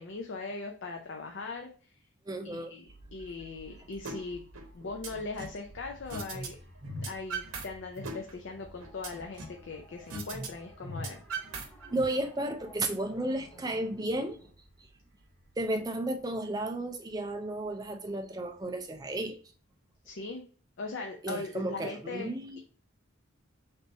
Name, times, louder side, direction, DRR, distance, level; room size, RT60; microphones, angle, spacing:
voice 1, 0.0-1.7 2.4-2.8 3.1-4.4 4.7-6.6 7.1-11.2 20.0-20.4 20.8-22.3, left 3 dB, 60° left, 2 dB, 0.5 m, -39 dB
voice 2, 2.3-2.7 11.9-14.4 15.6-19.4 21.2-22.6, right 1 dB, 20° right, 6 dB, 0.3 m, -33 dB
sound 1, 2.9-20.4, right 1 dB, 60° right, 1.1 m, -57 dB
sound 2, 4.0-4.2 4.5-5.6 6.1-6.5 6.8-7.6 8.0-9.6 10.1-10.5 10.8-12.0, right 2 dB, 80° right, 0.8 m, -38 dB
sound 3, 8.3-14.5, equal, 5° left, 0.7 m, -55 dB
3.3 x 2.9 x 3.9 m, 0.42 s
head